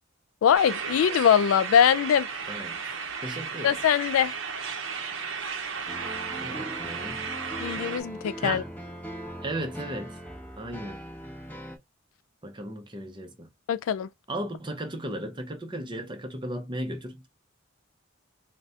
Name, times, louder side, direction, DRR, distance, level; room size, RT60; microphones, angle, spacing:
voice 1, 0.4-2.3 3.6-4.3 7.6-8.6 13.7-14.1, left 8 dB, 75° left, 0.3 m, -22 dB
sound 1, 0.5-8.0, right 5 dB, 60° right, 0.7 m, -34 dB
voice 2, 2.5-2.8 3.2-3.8 6.4-7.3 8.4-8.7 9.4-10.2 10.6-11.0 12.4-13.5 14.3-17.3, right 1 dB, 20° right, 0.7 m, -35 dB
sound 2, 5.9-11.8, equal, 10° left, 0.9 m, -40 dB
4.1 x 2.2 x 3.6 m
head